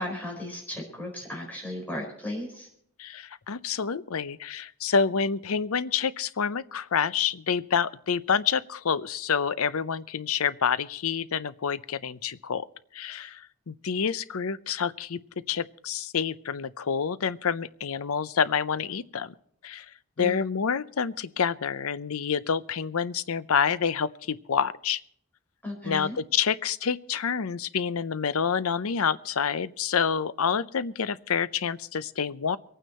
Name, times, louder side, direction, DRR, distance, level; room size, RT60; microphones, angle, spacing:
voice 1, 0.0-2.7 20.2-20.4 25.6-26.2, left 1 dB, 5° left, -1 dB, 4.7 m, -35 dB
voice 2, 3.0-12.7 12.9-15.2 15.5-19.3 19.6-19.9 20.2-25.0 25.8-32.6, left 6 dB, 75° left, 16 dB, 0.6 m, -28 dB
24.0 x 9.2 x 4.3 m, 0.65 s
head